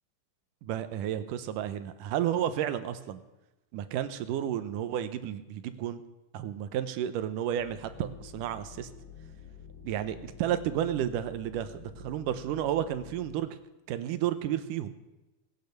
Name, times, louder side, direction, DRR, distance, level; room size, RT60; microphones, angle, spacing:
voice 1, 0.6-3.2 3.7-6.0 6.3-8.9 9.8-13.6 13.9-14.9, right 10 dB, 85° right, 11 dB, 2.5 m, -32 dB
sound 1, 7.6-13.3, left 6 dB, 35° left, 2.1 m, -49 dB
20.0 x 8.8 x 6.6 m, 1.0 s
omnidirectional pair, 3.7 m